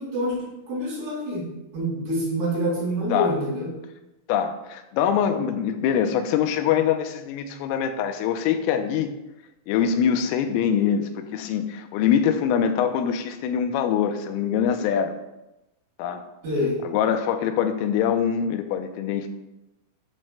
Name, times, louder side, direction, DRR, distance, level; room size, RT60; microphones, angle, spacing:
voice 1, 0.0-1.4 1.7-3.7 16.4-16.8, equal, 55° right, -5 dB, 4.5 m, -26 dB
voice 2, 4.3-9.1 9.7-15.1 16.0-16.2 16.9-19.3, left 8 dB, 90° left, 7 dB, 3.3 m, -23 dB
11.0 x 8.7 x 2.2 m, 0.93 s
omnidirectional pair, 5.8 m